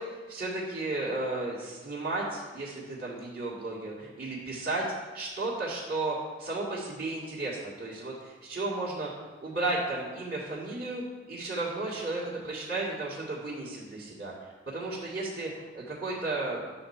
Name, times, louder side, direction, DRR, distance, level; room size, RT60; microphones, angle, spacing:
voice 1, 0.0-4.9 5.1-16.6, right 2 dB, 50° right, -8 dB, 2.1 m, -34 dB
11.0 x 4.4 x 7.2 m, 1.4 s
head